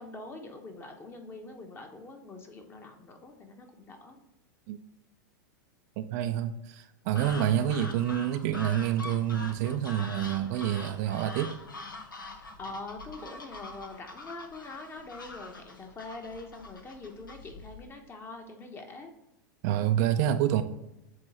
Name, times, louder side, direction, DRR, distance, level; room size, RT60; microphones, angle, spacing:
voice 1, 0.0-4.2 12.3-19.1, left 3 dB, 20° left, 4 dB, 1.1 m, -44 dB
voice 2, 6.0-11.5 19.6-20.6, right 10 dB, 50° right, 8 dB, 0.5 m, -28 dB
sound 1, 7.1-17.9, left 3 dB, 90° left, 0.9 m, -44 dB
7.8 x 3.1 x 4.3 m, 0.91 s
hypercardioid pair, 100°, 11 cm